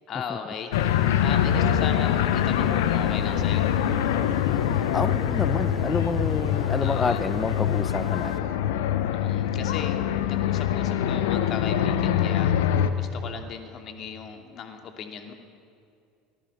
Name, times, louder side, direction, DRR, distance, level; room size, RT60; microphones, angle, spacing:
voice 1, 0.1-0.9 1.2-3.7 6.8-7.2 9.1-15.3, left 7 dB, 45° left, 5 dB, 2.8 m, -37 dB
sound 1, 0.7-12.9, left 10 dB, 70° left, 1.1 m, -24 dB
sound 2, 0.7-8.4, right 4 dB, 15° right, 2.0 m, -42 dB
voice 2, 4.9-8.3, left 4 dB, 20° left, 15 dB, 0.9 m, -28 dB
28.5 x 20.0 x 5.6 m, 2.4 s
figure-of-eight pair, 70°, 0 cm